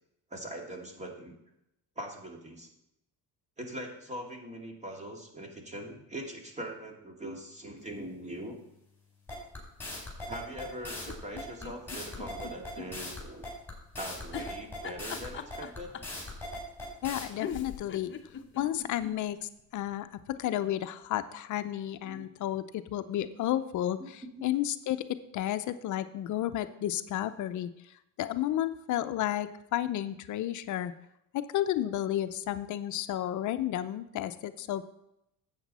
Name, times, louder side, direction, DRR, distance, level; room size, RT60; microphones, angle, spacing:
voice 1, 0.3-1.3 2.0-2.7 3.6-8.5 10.2-13.5 14.0-15.9 22.0-22.3 24.0-24.1 24.4-24.5, right 1 dB, 20° right, 2 dB, 2.2 m, -42 dB
sound 1, 9.3-17.3, left 2 dB, 5° left, 4.4 m, -39 dB
sound 2, 11.0-12.9 13.2-13.3 14.3-16.2 17.1-17.2 17.4-19.2 19.6-19.7 19.9-20.0, left 7 dB, 35° left, 0.9 m, -41 dB
voice 2, 17.0-18.1 18.6-27.7 28.2-30.9 31.3-34.9, left 12 dB, 55° left, 11 dB, 0.6 m, -32 dB
12.0 x 8.2 x 4.2 m, 0.83 s
cardioid pair, 120°, 35 cm